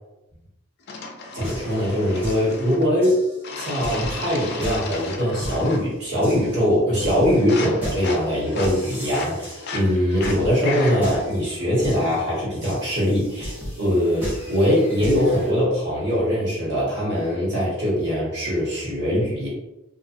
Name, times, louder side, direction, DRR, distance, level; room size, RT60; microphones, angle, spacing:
sound 1, 0.9-2.9 3.4-5.9 6.2-6.6 6.9-11.2, left 3 dB, 50° left, 0.3 m, -35 dB
voice 1, 1.3-3.2 3.5-19.5, equal, 50° right, -7 dB, 1.2 m, -22 dB
sound 2, 1.4-15.5, equal, 10° right, 0.7 m, -37 dB
2.6 x 2.4 x 2.5 m, 0.94 s
head